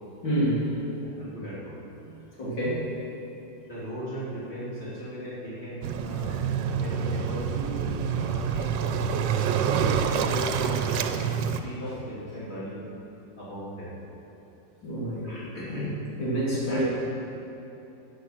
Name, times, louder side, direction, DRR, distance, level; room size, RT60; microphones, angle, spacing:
voice 1, 0.2-0.6 2.1-3.0 14.8-15.2 16.2-16.8, right 1 dB, 85° left, -7 dB, 3.4 m, -28 dB
voice 2, 0.8-1.8 3.7-6.4 6.8-9.7 10.1-11.3 11.6-12.9 13.4-14.0 15.2-16.0 16.6-16.8, equal, 35° left, -8 dB, 3.4 m, -37 dB
Waves surf, 5.8-11.6, right 7 dB, 80° right, 1.4 m, -27 dB
13.0 x 9.3 x 5.9 m, 3.0 s
omnidirectional pair, 2.0 m